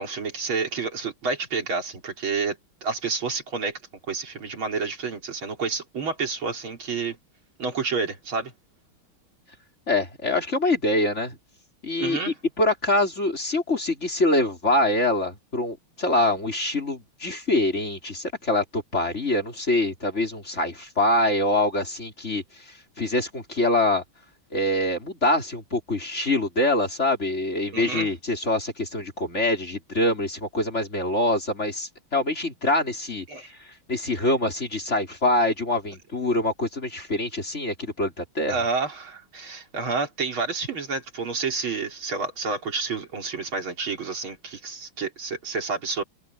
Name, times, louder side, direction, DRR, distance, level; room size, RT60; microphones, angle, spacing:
voice 1, 0.0-3.8 4.1-7.2 7.6-8.5 12.0-12.3 27.7-28.1 33.3-33.5 38.5-46.0, right 4 dB, 75° right, 4.3 m, -29 dB
voice 2, 9.9-11.4 11.8-24.0 24.5-33.2 33.6-38.6, left 1 dB, 30° left, 4.6 m, -25 dB
omnidirectional pair, 2.3 m